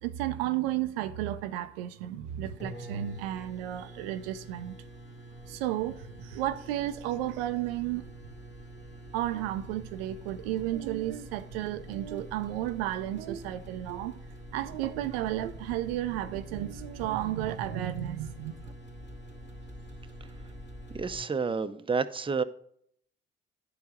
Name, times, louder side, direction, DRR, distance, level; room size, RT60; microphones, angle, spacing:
voice 1, 0.0-4.8 5.5-8.0 9.1-14.1 14.5-18.7, right 13 dB, 85° right, 0.5 m, -33 dB
sound 1, 2.3-2.4 2.6-21.2, equal, 40° left, 2.1 m, -46 dB
voice 2, 20.9-22.4, right 5 dB, 20° right, 0.6 m, -29 dB
10.0 x 4.7 x 4.9 m
hypercardioid pair, 45°, 29 cm